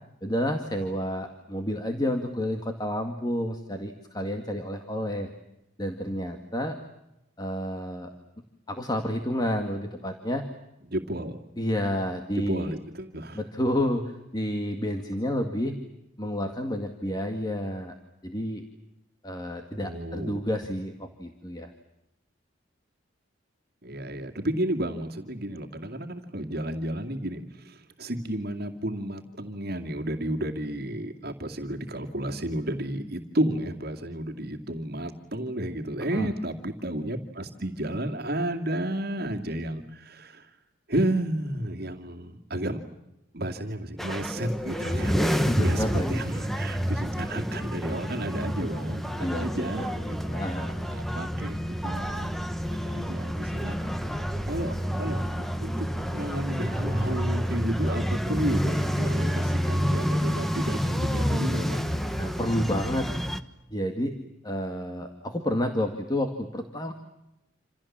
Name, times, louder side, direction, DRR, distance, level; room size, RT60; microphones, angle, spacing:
voice 1, 0.2-5.3 5.8-6.8 7.4-8.1 8.7-10.5 11.6-12.7 13.4-15.8 16.2-17.9 18.2-18.6 19.2-21.7 36.1-36.3 45.4-46.2 49.2-49.9 50.3-50.8 62.2-63.1 63.7-64.2 64.4-66.9, equal, 20° left, 4 dB, 2.1 m, -30 dB
voice 2, 10.9-11.4 12.3-13.4 19.8-20.4 23.8-40.5 40.9-42.8 43.3-52.4 52.7-53.8 54.5-61.8, right 1 dB, 50° right, 3 dB, 2.3 m, -32 dB
sound 1, 44.0-63.4, equal, ahead, 1.3 m, -29 dB
28.0 x 28.0 x 7.5 m, 0.91 s
head